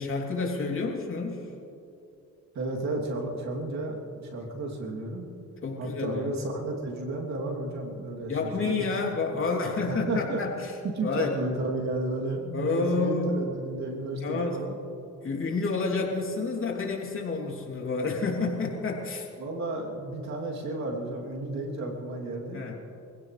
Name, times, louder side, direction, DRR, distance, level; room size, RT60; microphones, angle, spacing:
voice 1, 0.0-1.5 5.6-6.3 8.3-10.8 11.0-11.4 12.5-13.4 14.2-14.6 15.2-19.3 22.5-22.7, left 3 dB, 45° left, -1 dB, 3.2 m, -29 dB
voice 2, 2.5-5.3 5.8-8.9 9.9-10.4 10.9-14.8 19.4-22.6, right 2 dB, 65° right, -1 dB, 3.0 m, -32 dB
25.0 x 16.5 x 3.3 m, 2.7 s
cardioid pair, 90°, 30 cm